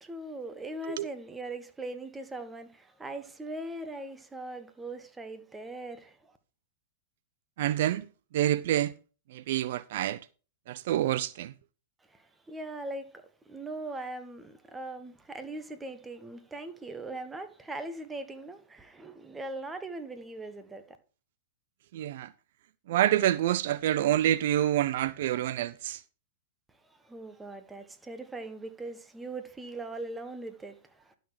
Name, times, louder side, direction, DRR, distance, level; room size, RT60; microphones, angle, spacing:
voice 1, 0.0-6.3 12.1-21.0 26.8-31.2, right 2 dB, 10° right, 1.3 m, -40 dB
voice 2, 7.6-8.1 8.3-8.9 9.3-10.2 10.7-11.5 21.9-22.3 22.9-26.0, right 12 dB, 65° right, 0.4 m, -27 dB
11.5 x 6.3 x 4.8 m
hypercardioid pair, 115°, 0 cm